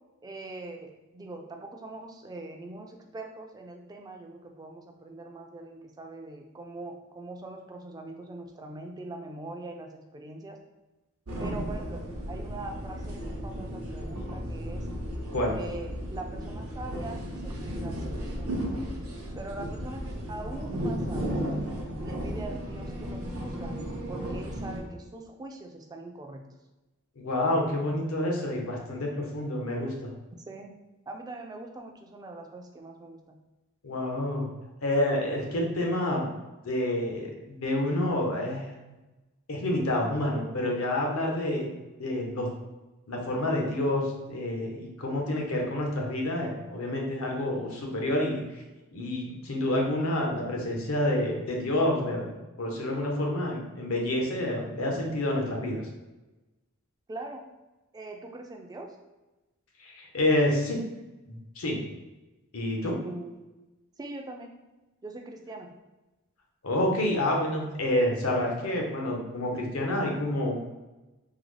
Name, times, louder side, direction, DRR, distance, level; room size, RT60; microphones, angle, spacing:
voice 1, 0.2-10.6 11.4-14.9 15.5-18.5 19.3-21.4 22.0-23.7 24.1-26.5 30.5-30.8 31.1-33.4 57.1-57.4 57.9-59.0 63.0-63.4 64.0-64.5 65.0-65.7, right 2 dB, 20° right, 2 dB, 0.3 m, -42 dB
sound 1, 11.3-24.8, equal, 75° right, 0.7 m, -34 dB
voice 2, 27.2-30.1 33.8-34.5 34.8-36.2 36.6-38.6 39.5-41.7 42.0-42.5 43.1-48.4 48.9-55.8 59.8-60.8 61.3-61.8 62.5-63.0 66.6-70.6, left 1 dB, 70° left, 0 dB, 0.8 m, -28 dB
3.7 x 2.0 x 3.2 m, 1.1 s
head